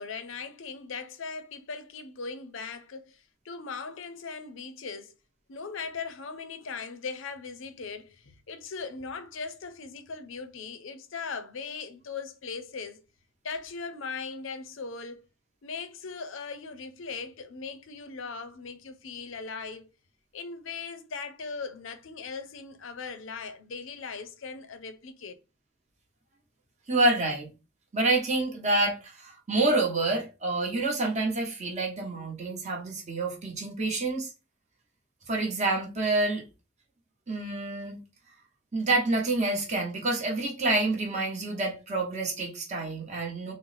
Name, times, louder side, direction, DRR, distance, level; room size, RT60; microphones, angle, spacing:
voice 1, 0.0-5.1 5.5-13.0 13.4-15.3 15.6-19.9 20.3-25.4, left 5 dB, 70° left, 0.6 m, -39 dB
voice 2, 26.9-27.5 27.9-34.3 35.3-36.4 37.3-38.0 38.7-43.5, right 2 dB, 35° right, 1.2 m, -28 dB
3.9 x 2.1 x 4.0 m
head